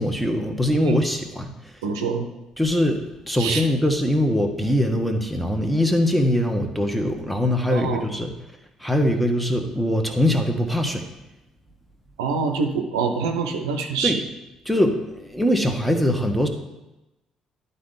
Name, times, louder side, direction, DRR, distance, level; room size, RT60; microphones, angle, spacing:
voice 1, 0.0-1.5 2.6-8.3 8.8-11.0 14.0-14.2 14.6-16.5, left 1 dB, 5° left, 5 dB, 1.2 m, -22 dB
voice 2, 1.8-2.3 3.4-3.7 7.7-8.0 12.2-14.2, right 4 dB, 80° right, 4 dB, 0.6 m, -25 dB
11.0 x 4.0 x 3.8 m, 0.97 s
hypercardioid pair, 45°, 2 cm